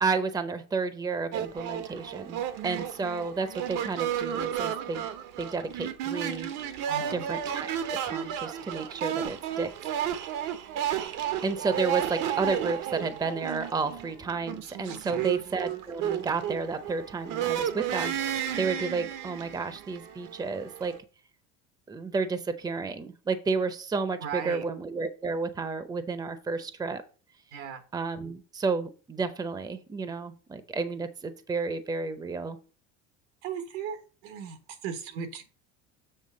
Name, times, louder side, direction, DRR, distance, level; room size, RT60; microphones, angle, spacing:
voice 1, 0.0-5.0 5.4-6.5 7.1-7.7 8.0-9.7 10.9-20.9 21.9-27.0 27.9-32.6, right 4 dB, 10° right, 11 dB, 0.6 m, -31 dB
sound 1, 1.3-21.0, right 10 dB, 65° right, 1.0 m, -33 dB
voice 2, 6.9-7.2 15.1-15.3 24.2-24.6 27.5-27.8 33.4-35.5, right 7 dB, 85° right, 7 dB, 1.5 m, -37 dB
7.6 x 3.3 x 6.4 m, 0.37 s
supercardioid pair, 115°, 33 cm